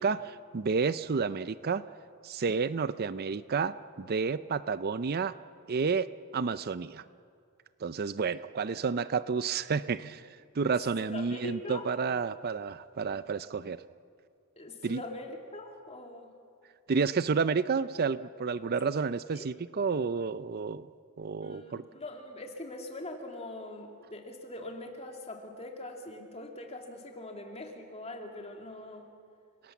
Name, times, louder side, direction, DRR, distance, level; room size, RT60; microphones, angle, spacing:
voice 1, 0.0-1.8 2.2-5.3 5.7-6.1 6.3-7.0 7.8-10.2 10.5-13.8 14.8-15.0 16.9-20.9 21.2-21.8, right 5 dB, 45° right, 15 dB, 0.5 m, -30 dB
voice 2, 10.7-11.8 14.6-16.3 19.3-19.5 21.4-29.1, left 1 dB, 30° left, 3 dB, 2.5 m, -42 dB
29.5 x 18.0 x 7.2 m, 2.3 s
head